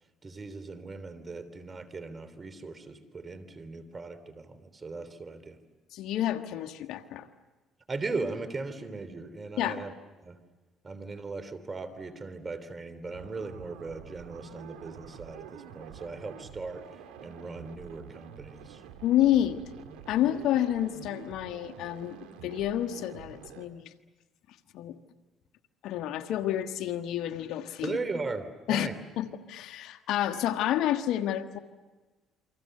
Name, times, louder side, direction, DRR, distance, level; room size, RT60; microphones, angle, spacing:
voice 1, 0.2-5.6 7.9-9.9 10.2-10.4 10.8-18.8 27.8-29.0, right 3 dB, 30° right, 13 dB, 3.4 m, -38 dB
voice 2, 5.9-7.3 9.6-9.8 19.0-19.6 20.1-23.9 24.7-25.0 25.8-28.0 28.7-28.9 29.2-31.6, left 12 dB, 70° left, 6 dB, 1.5 m, -29 dB
sound 1, 13.1-23.7, right 8 dB, 80° right, 2.3 m, -48 dB
29.0 x 25.0 x 6.7 m, 1.2 s
supercardioid pair, 75°, 0 cm